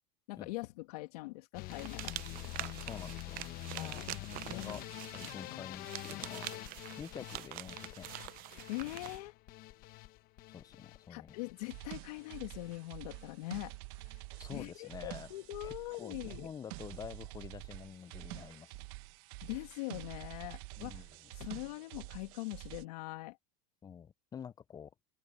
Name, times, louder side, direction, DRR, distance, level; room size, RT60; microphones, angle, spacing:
voice 1, 0.3-2.1 3.8-4.2 4.5-4.8 5.2-5.6 8.5-9.3 11.1-13.7 14.5-16.5 19.4-21.1 21.3-23.4, left 21 dB, 80° left, 2.5 m, -42 dB
sound 1, 1.5-13.7 14.0-14.6 14.9-15.5 15.8-16.0 16.3-16.4 16.7-16.8, left 18 dB, 50° left, 1.0 m, -47 dB
sound 2, 1.7-9.2, right 19 dB, 45° right, 0.6 m, -45 dB
voice 2, 2.6-3.4 3.7-4.1 4.4-4.8 5.1-8.1 10.5-11.4 14.4-15.3 15.6-18.7 20.8-21.3 23.8-24.9, left 7 dB, 20° left, 0.6 m, -48 dB
sound 3, 11.6-22.8, right 22 dB, 65° right, 1.3 m, -48 dB
supercardioid pair, 135°, 20 cm